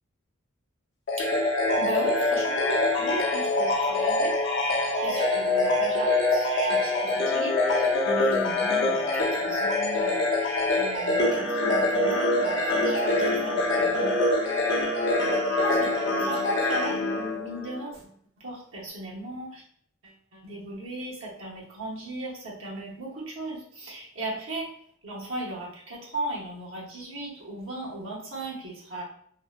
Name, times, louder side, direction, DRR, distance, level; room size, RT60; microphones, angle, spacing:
sound 1, 1.1-17.8, left 2 dB, 55° left, 0.6 m, -25 dB
voice 1, 1.2-4.4 5.0-14.2 15.5-19.6 20.0-24.7 25.0-29.0, right 1 dB, 70° right, -4 dB, 0.8 m, -37 dB
2.6 x 2.1 x 2.3 m, 0.62 s
head